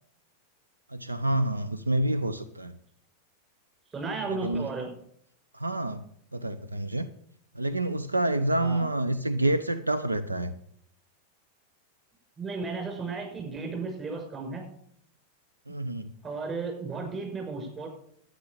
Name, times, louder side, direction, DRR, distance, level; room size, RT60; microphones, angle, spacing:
voice 1, 0.9-2.8 4.3-4.7 5.5-6.0 6.3-7.1 7.6-10.5 15.7-16.1, right 1 dB, 80° right, 12 dB, 0.6 m, -28 dB
voice 2, 3.9-4.9 8.6-8.9 12.4-14.7 16.2-17.9, right 4 dB, 25° right, 3 dB, 6.0 m, -34 dB
12.0 x 9.6 x 7.2 m, 0.67 s
figure-of-eight pair, 90°, 0 cm